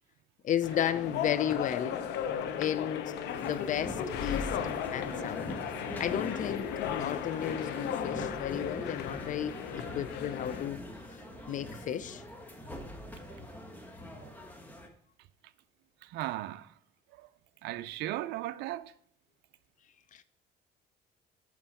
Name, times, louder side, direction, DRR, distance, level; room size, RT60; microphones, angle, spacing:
voice 1, 0.4-2.0 2.6-3.1 3.4-4.5 4.9-5.5 6.0-10.8 11.5-12.2 20.1-20.2, left 10 dB, 50° left, 0.5 m, -33 dB
sound 1, 0.6-10.7, left 8 dB, 85° left, 0.8 m, -35 dB
sound 2, 3.3-14.9, equal, 10° left, 1.4 m, -44 dB
voice 2, 11.3-11.8 12.6-12.8 13.3-13.5 14.1-14.3 16.0-16.7 17.1-17.3 17.6-18.9, right 15 dB, 85° right, 0.4 m, -39 dB
7.6 x 5.9 x 4.2 m
cardioid pair, 110°, 17 cm